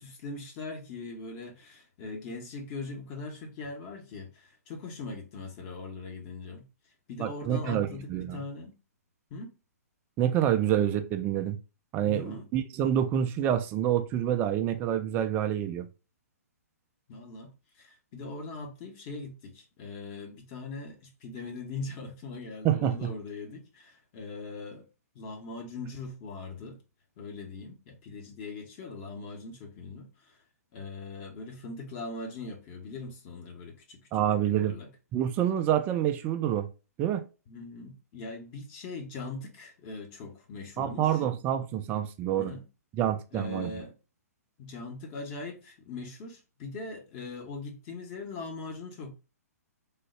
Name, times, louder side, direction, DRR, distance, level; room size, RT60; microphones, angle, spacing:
voice 1, 0.0-6.7 7.1-8.8 9.3-9.5 12.0-12.5 17.1-24.9 25.1-26.8 27.2-30.4 30.7-34.2 34.5-34.9 37.5-41.2 42.3-42.6 43.3-43.9 44.6-49.1, left 3 dB, 35° left, 1.0 m, -41 dB
voice 2, 7.2-8.4 10.2-11.6 11.9-15.9 22.6-23.1 34.1-34.7 35.1-36.7 37.0-37.2 40.8-42.5 43.0-43.7, right 10 dB, 20° right, 0.3 m, -27 dB
3.5 x 2.3 x 3.1 m
figure-of-eight pair, 125°, 9 cm